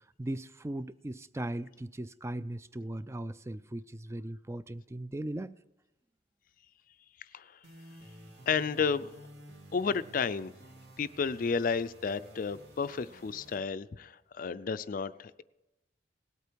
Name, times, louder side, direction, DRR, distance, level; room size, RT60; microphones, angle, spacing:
voice 1, 0.2-5.6, right 1 dB, 15° right, 14 dB, 0.4 m, -38 dB
sound 1, 7.6-13.6, right 1 dB, 70° right, 2.6 m, -53 dB
voice 2, 8.5-9.1 9.7-10.5 11.0-15.4, left 5 dB, 50° left, 15 dB, 0.4 m, -32 dB
18.5 x 8.4 x 4.6 m, 0.97 s
head